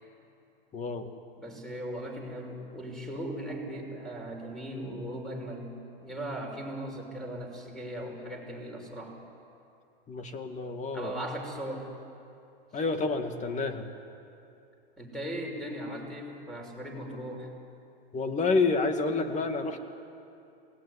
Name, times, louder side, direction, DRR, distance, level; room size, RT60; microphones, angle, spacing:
voice 1, 0.7-1.1 10.1-11.1 12.7-13.9 18.1-19.8, left 3 dB, 25° left, 7 dB, 2.1 m, -29 dB
voice 2, 1.4-5.7 6.0-9.2 10.9-11.9 15.0-17.5, right 1 dB, ahead, 1 dB, 5.8 m, -38 dB
27.0 x 19.0 x 9.9 m, 2.7 s
hypercardioid pair, 120°, 30 cm